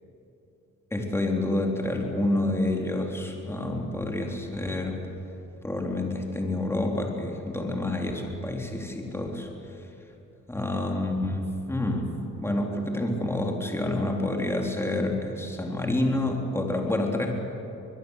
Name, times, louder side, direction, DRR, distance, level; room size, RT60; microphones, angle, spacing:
voice 1, 0.9-5.0 5.6-9.5 10.5-17.3, left 1 dB, 10° left, 1 dB, 3.8 m, -28 dB
22.5 x 22.0 x 8.2 m, 3.0 s
cardioid pair, 90°, 30 cm